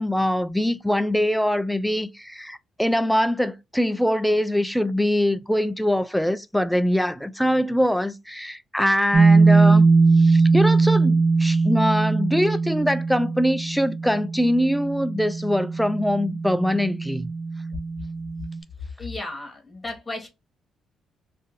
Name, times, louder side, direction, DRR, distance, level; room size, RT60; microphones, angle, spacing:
voice 1, 0.0-9.9 10.2-17.3, equal, ahead, 0.3 m, -23 dB
sound 1, 9.1-18.6, right 4 dB, 40° right, 0.8 m, -20 dB
voice 2, 19.0-20.3, left 2 dB, 20° left, 1.2 m, -34 dB
2.6 x 2.5 x 3.8 m
cardioid pair, 90°, 0 cm